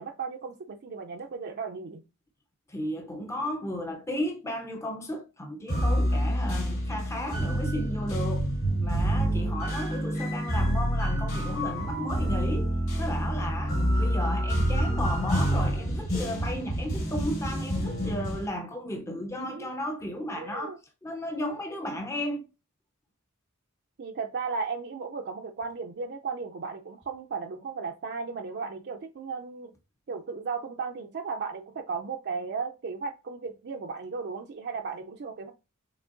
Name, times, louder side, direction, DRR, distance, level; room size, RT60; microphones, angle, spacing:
voice 1, 0.0-2.0 9.2-9.6 19.4-19.7 20.4-20.8 24.0-29.7 30.1-35.5, right 5 dB, 50° right, 0.5 m, -35 dB
voice 2, 2.7-8.5 8.8-22.4, left 1 dB, 15° left, 0.5 m, -34 dB
sound 1, 5.7-18.5, equal, 65° left, 2.0 m, -27 dB
5.9 x 3.5 x 2.5 m
head